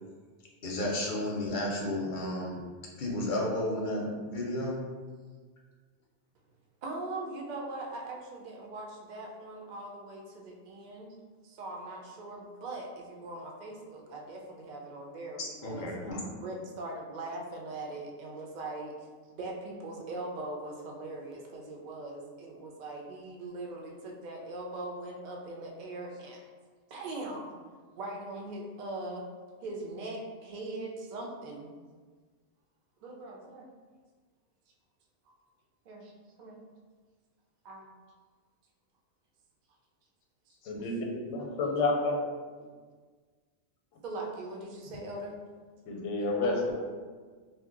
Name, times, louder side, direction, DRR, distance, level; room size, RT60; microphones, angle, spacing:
voice 1, 0.6-2.6 3.0-4.8 15.4-16.3, left 1 dB, 55° left, -2 dB, 0.6 m, -32 dB
voice 2, 6.8-11.2 11.4-15.9 16.4-26.4 26.9-27.5 27.9-29.2 29.6-31.7 33.0-33.7 35.3-35.4 35.9-36.1 36.4-36.6 37.6-37.9 41.3-41.6 42.6-42.7 44.0-45.4, right 2 dB, 55° right, 0 dB, 0.5 m, -41 dB
voice 3, 40.6-42.2 45.9-46.8, left 2 dB, 90° left, 0 dB, 0.9 m, -30 dB
2.6 x 2.1 x 3.7 m, 1.5 s
omnidirectional pair, 1.2 m